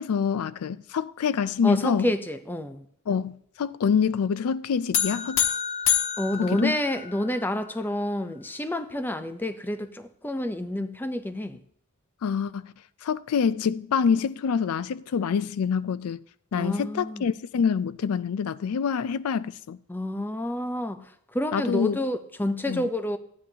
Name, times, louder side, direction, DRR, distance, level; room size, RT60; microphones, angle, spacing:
voice 1, 0.0-2.1 3.1-5.4 6.4-6.8 12.2-12.7 13.0-16.2 16.5-19.8 21.5-22.0 22.7-22.9, left 6 dB, 90° left, 0.4 m, -26 dB
voice 2, 1.6-2.9 6.2-11.6 16.5-17.3 19.9-23.2, left 1 dB, 10° left, 0.5 m, -29 dB
sound 1, 4.9-7.4, left 9 dB, 60° left, 1.1 m, -27 dB
15.0 x 9.9 x 2.8 m
head